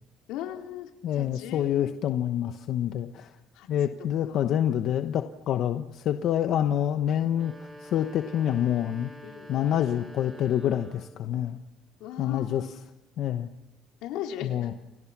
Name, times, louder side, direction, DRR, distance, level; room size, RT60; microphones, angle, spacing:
voice 1, 0.3-2.0 3.5-3.7 4.3-4.5 9.2-9.5 12.0-12.8 14.0-14.7, left 10 dB, 90° left, 2 dB, 4.2 m, -38 dB
voice 2, 1.0-3.3 3.7-7.5 7.8-9.1 9.5-11.6 12.2-12.6 13.2-13.5 14.4-14.7, left 10 dB, 55° left, 7 dB, 1.0 m, -27 dB
sound 1, 7.2-11.3, equal, 25° right, 3.5 m, -47 dB
29.5 x 29.5 x 6.1 m, 1.0 s
cardioid pair, 160°, 0 cm